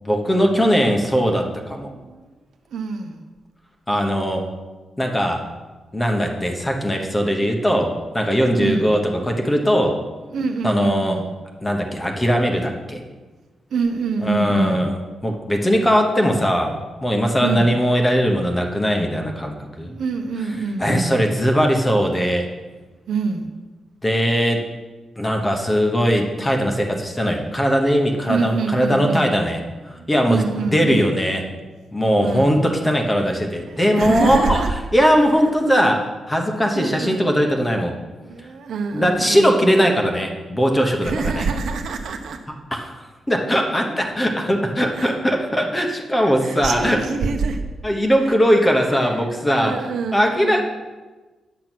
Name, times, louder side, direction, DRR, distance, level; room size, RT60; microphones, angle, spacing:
voice 1, 0.0-1.9 3.9-4.5 5.0-5.5 5.9-10.0 10.6-11.2 11.6-13.0 14.2-15.0 15.2-16.7 17.0-19.9 20.8-22.5 24.0-24.6 25.2-29.6 29.9-31.4 31.9-34.6 34.9-38.0 38.9-41.5 42.7-42.9 43.3-47.0 47.8-49.8 50.1-50.6, equal, 10° left, 2 dB, 1.0 m, -19 dB
voice 2, 1.9-2.3 2.7-3.2 8.6-8.9 10.3-11.3 13.7-14.9 17.4-17.7 19.8-21.2 23.1-23.5 28.3-29.4 30.0-31.1 32.2-32.6 33.6-34.7 35.7-35.9 36.7-37.2 38.2-39.8 41.0-42.4 44.9-45.1 45.9-46.0 46.4-47.6 48.2-48.4 49.0-49.1 49.5-50.6, right 4 dB, 70° right, 6 dB, 1.0 m, -26 dB
9.0 x 7.6 x 6.1 m, 1.2 s
wide cardioid pair, 175°, 0 cm